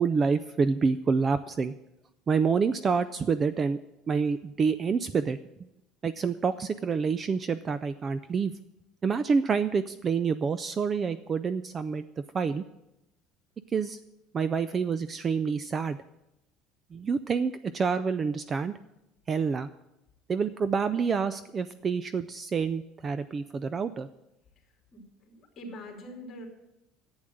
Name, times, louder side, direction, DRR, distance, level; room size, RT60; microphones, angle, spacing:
voice 1, 0.0-1.7 2.3-3.8 4.1-5.4 6.0-8.5 9.0-12.0 12.3-12.6 13.7-14.0 14.3-16.0 16.9-18.7 19.3-19.7 20.3-24.1, right 5 dB, 20° right, 13 dB, 0.3 m, -27 dB
voice 2, 24.6-26.5, equal, 25° left, 1 dB, 2.8 m, -45 dB
11.0 x 8.8 x 7.7 m, 0.89 s
cardioid pair, 175°, 0 cm